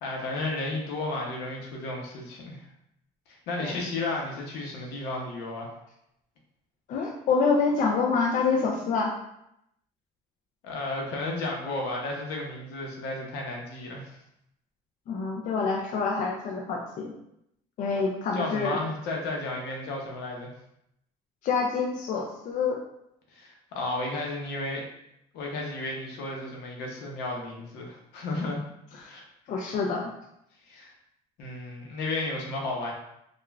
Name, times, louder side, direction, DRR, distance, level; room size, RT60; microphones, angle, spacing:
voice 1, 0.0-2.6 3.3-5.7 10.6-14.2 18.3-20.5 23.3-24.8 25.3-28.6 29.1-29.3 30.7-30.9 31.4-32.9, left 2 dB, 80° left, 0 dB, 0.7 m, -33 dB
voice 2, 6.9-9.1 15.1-17.1 17.8-18.8 21.4-22.8 28.9-29.1 29.5-30.1, left 4 dB, 50° left, 0 dB, 0.4 m, -27 dB
3.0 x 2.3 x 2.3 m, 0.78 s
cardioid pair, 130°, 17 cm